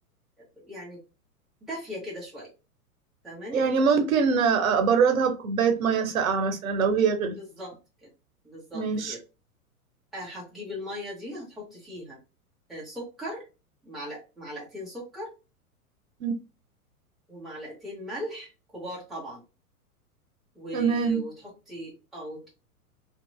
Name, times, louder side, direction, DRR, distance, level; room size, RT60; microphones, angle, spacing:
voice 1, 0.4-1.0 1.7-2.5 3.2-3.7 7.4-8.1 8.4-9.2 10.1-12.2 12.7-13.5 13.8-15.3 17.3-19.4 20.5-22.5, equal, ahead, 0.4 m, -38 dB
voice 2, 3.5-7.4 8.7-9.1 16.2-16.3 20.7-21.2, right 6 dB, 65° right, 0.7 m, -23 dB
2.8 x 2.4 x 2.2 m
figure-of-eight pair, 100°, 45 cm